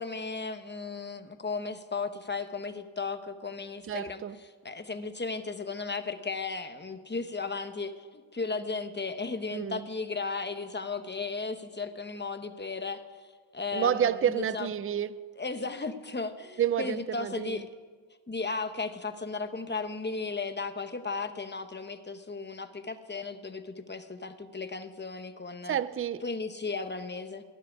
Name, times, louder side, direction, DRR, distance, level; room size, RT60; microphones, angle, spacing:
voice 1, 0.0-13.0 13.5-14.7 15.4-17.7 18.3-25.8 26.2-27.4, left 4 dB, 20° left, 0.9 m, -35 dB
voice 2, 3.9-4.4 9.5-9.9 13.7-15.3 16.6-17.7 25.7-26.2, right 9 dB, 30° right, 0.4 m, -29 dB
16.0 x 7.5 x 9.8 m
wide cardioid pair, 130°, 49 cm